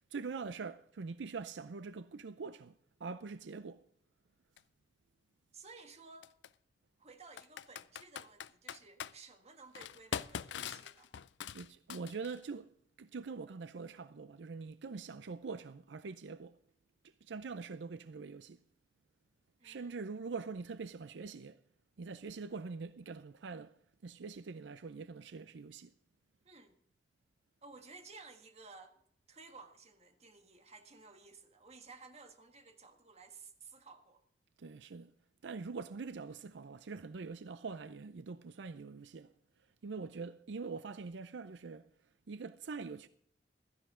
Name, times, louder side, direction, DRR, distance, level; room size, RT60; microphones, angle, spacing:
voice 1, 0.1-3.9 11.5-16.6 17.0-18.6 19.6-21.6 22.0-23.8 24.0-25.9 34.6-35.1 35.4-39.3 39.8-41.9 42.3-43.1, right 4 dB, 80° right, 0.5 m, -44 dB
Computer keyboard, 4.6-4.7 6.2-6.5 7.4-9.1 9.7-12.4, left 8 dB, 80° left, 0.5 m, -42 dB
voice 2, 5.5-6.3 7.0-11.1 19.6-20.2 26.5-26.8 27.6-29.0 29.3-34.2, right 4 dB, 40° right, 1.7 m, -55 dB
16.0 x 13.0 x 3.8 m
head